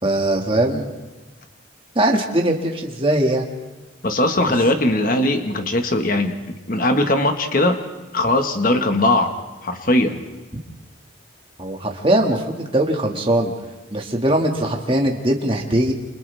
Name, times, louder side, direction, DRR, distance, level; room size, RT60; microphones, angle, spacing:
voice 1, 0.0-0.9 2.0-3.5 4.5-4.6 11.6-13.5 13.9-15.9, right 1 dB, 25° right, 1 dB, 2.1 m, -20 dB
voice 2, 4.0-6.3 6.7-7.8 8.1-9.3 9.6-10.2, left 1 dB, 45° left, 5 dB, 1.7 m, -19 dB
29.0 x 28.0 x 3.6 m, 1.2 s
head